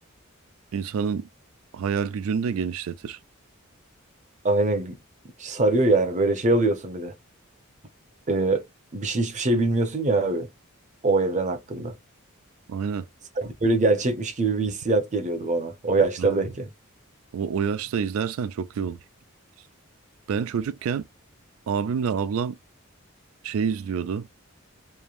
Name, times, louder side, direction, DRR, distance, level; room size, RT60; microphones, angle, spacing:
voice 1, 0.7-1.3 1.7-3.2 12.7-13.1 16.2-16.4 17.3-19.0 20.3-21.1 21.7-22.6 23.4-24.3, right 6 dB, 70° right, 0.3 m, -27 dB
voice 2, 4.4-5.0 5.4-7.1 8.3-8.6 8.9-10.5 11.0-11.9 13.4-16.7, right 2 dB, 35° right, 0.7 m, -23 dB
3.1 x 2.1 x 2.4 m
head